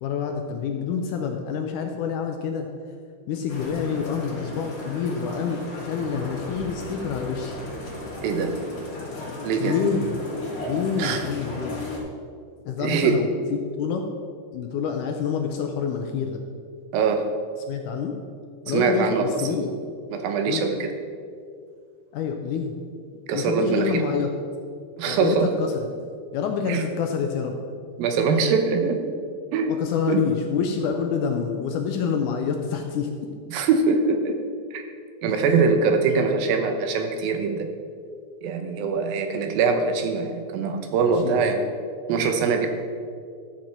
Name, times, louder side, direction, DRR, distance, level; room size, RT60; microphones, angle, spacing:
voice 1, 0.0-2.7 3.3-7.6 9.6-10.2 10.6-11.8 12.6-14.1 14.5-16.4 17.7-18.2 18.7-19.7 20.5-20.7 22.1-22.7 23.3-24.3 25.1-25.9 26.3-27.6 29.7-33.3 35.3-35.6 41.0-41.5 42.1-42.4, left 6 dB, 75° left, 3 dB, 1.9 m, -27 dB
sound 1, 3.5-12.0, left 2 dB, 60° left, 3.5 m, -35 dB
voice 2, 8.2-8.6 9.4-9.8 11.0-11.2 12.8-13.2 16.9-17.2 18.7-19.2 20.1-20.9 23.3-24.0 25.0-25.5 26.7-26.8 28.0-29.1 29.5-29.7 30.1-30.2 33.5-34.4 34.7-34.8 35.2-37.7 38.4-41.6 42.1-42.7, right 5 dB, 85° right, 5 dB, 2.7 m, -23 dB
13.5 x 7.7 x 4.4 m, 2.2 s
omnidirectional pair, 4.2 m